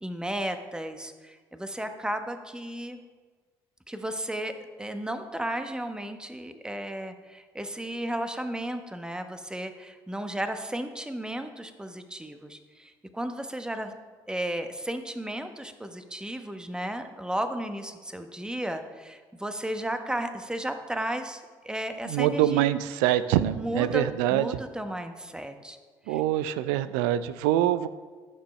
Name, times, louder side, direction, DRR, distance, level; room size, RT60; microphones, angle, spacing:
voice 1, 0.0-3.0 3.9-13.9 14.3-22.7 23.6-24.0 24.3-25.8 26.1-26.2, right 1 dB, 10° right, 7 dB, 1.0 m, -34 dB
voice 2, 22.1-24.6 26.1-27.9, right 12 dB, 80° right, 14 dB, 0.4 m, -25 dB
14.0 x 6.1 x 3.2 m, 1.4 s
hypercardioid pair, 55°, 10 cm